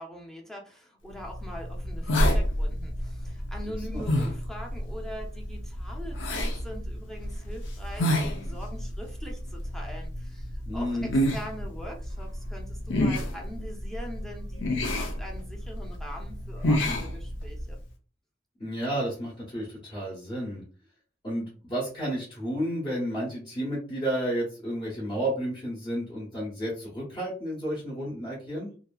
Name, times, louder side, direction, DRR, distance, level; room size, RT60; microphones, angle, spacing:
voice 1, 0.0-17.8, equal, ahead, -1 dB, 0.6 m, -42 dB
sound 1, 1.2-17.8, left 1 dB, 75° left, 0.6 m, -30 dB
voice 2, 3.6-4.1 10.7-11.1 18.6-20.6 21.2-28.7, equal, 25° left, -7 dB, 0.9 m, -32 dB
2.8 x 2.5 x 2.3 m, 0.39 s
head